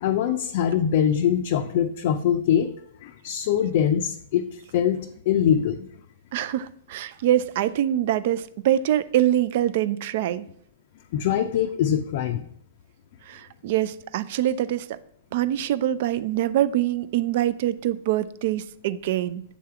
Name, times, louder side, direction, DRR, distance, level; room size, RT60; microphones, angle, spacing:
voice 1, 0.0-2.7 3.0-4.5 4.7-5.0 5.3-5.9 11.1-12.4, left 9 dB, 55° left, 0.4 m, -23 dB
voice 2, 6.3-10.5 13.3-15.0 15.3-19.4, right 12 dB, 55° right, 0.3 m, -24 dB
7.3 x 3.4 x 4.5 m
hypercardioid pair, 120°, 0 cm